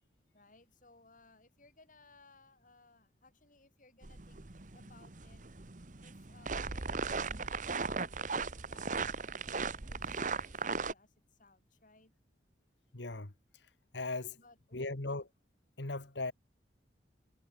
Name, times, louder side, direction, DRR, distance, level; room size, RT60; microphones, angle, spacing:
voice 1, 0.3-4.4 4.7-5.4 6.0-12.1 14.3-14.9, left 3 dB, 45° left, 7.7 m, -63 dB
sound 1, 4.0-10.9, right 4 dB, 45° right, 1.2 m, -38 dB
voice 2, 12.9-13.3 13.9-14.4 14.7-15.3 15.8-16.3, left 2 dB, 70° left, 1.8 m, -37 dB
head